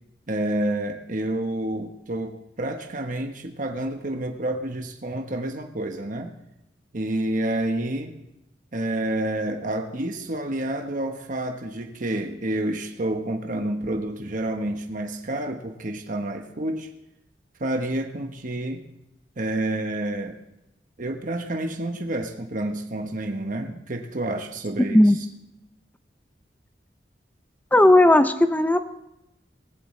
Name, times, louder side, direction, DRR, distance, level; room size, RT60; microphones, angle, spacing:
voice 1, 0.3-6.3 6.9-8.1 8.7-16.9 17.6-18.8 19.4-20.4 21.0-25.2, right 1 dB, 50° right, 4 dB, 1.1 m, -29 dB
voice 2, 27.7-28.9, left 1 dB, 10° left, 10 dB, 0.5 m, -16 dB
19.0 x 15.5 x 3.2 m, 0.84 s
head